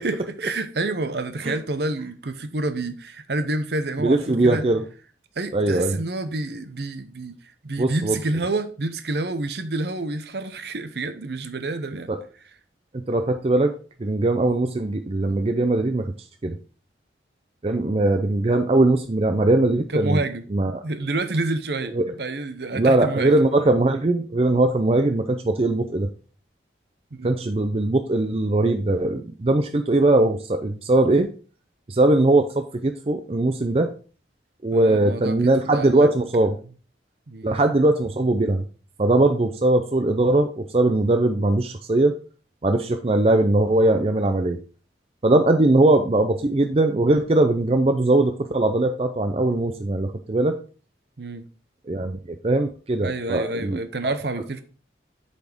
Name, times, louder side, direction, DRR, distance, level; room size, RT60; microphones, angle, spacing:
voice 1, 0.0-4.6 5.4-7.3 7.6-12.1 19.9-20.4 20.8-23.3 27.2-27.4 34.7-36.1 37.3-37.6 51.2-51.4 53.0-54.6, right 2 dB, 60° right, 0.8 m, -28 dB
voice 2, 4.0-4.8 5.5-6.0 7.8-8.2 12.1-12.2 12.9-13.7 14.0-16.0 16.4-16.5 17.6-20.2 20.5-20.8 21.9-22.0 22.7-26.1 27.2-31.3 31.9-33.9 34.6-36.6 37.4-38.6 39.0-42.1 42.6-44.6 45.2-50.6 51.9-54.1, right 2 dB, 30° right, 0.5 m, -20 dB
8.4 x 4.3 x 4.4 m
head